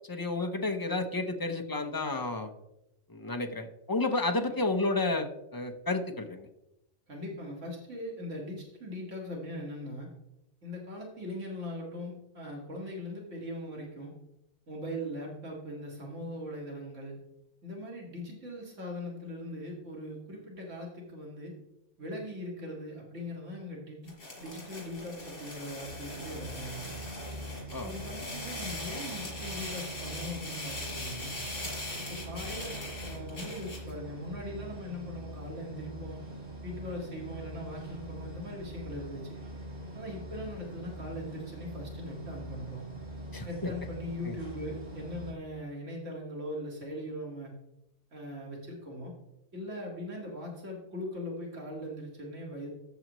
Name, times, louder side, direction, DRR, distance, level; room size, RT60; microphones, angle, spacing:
voice 1, 0.1-2.5 3.1-6.5 27.7-27.9 43.3-43.7 44.2-44.3, left 2 dB, 20° left, 5 dB, 0.7 m, -31 dB
voice 2, 7.1-10.1 10.6-14.1 14.7-17.2 17.6-21.5 22.0-24.1 24.4-26.9 27.8-31.3 31.9-36.2 36.6-39.4 39.9-42.9 43.4-47.5 48.1-49.1 49.5-52.7, left 1 dB, 80° right, -2 dB, 2.4 m, -40 dB
sound 1, 24.1-33.9, left 1 dB, 85° left, 4.4 m, -41 dB
sound 2, 25.8-45.3, right 1 dB, 50° right, 3.1 m, -43 dB
13.5 x 7.8 x 3.1 m, 0.88 s
omnidirectional pair, 1.2 m